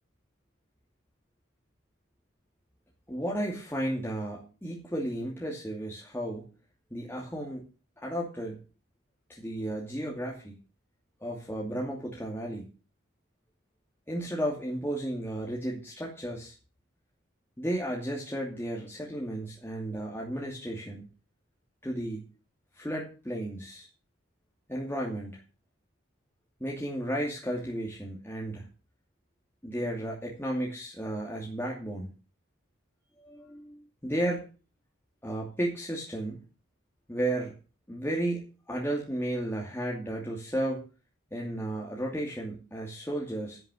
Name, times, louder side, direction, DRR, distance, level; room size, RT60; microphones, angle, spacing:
voice 1, 3.1-6.5 6.9-7.6 8.0-8.6 9.3-10.6 11.2-12.7 14.1-16.5 17.6-21.1 21.8-22.3 22.8-23.9 24.7-25.4 26.6-28.7 29.6-32.1 33.2-34.5 35.2-36.4 37.1-37.6 37.9-40.8 41.3-43.6, right 1 dB, 10° left, -3 dB, 2.6 m, -33 dB
11.0 x 10.0 x 6.3 m, 0.34 s
head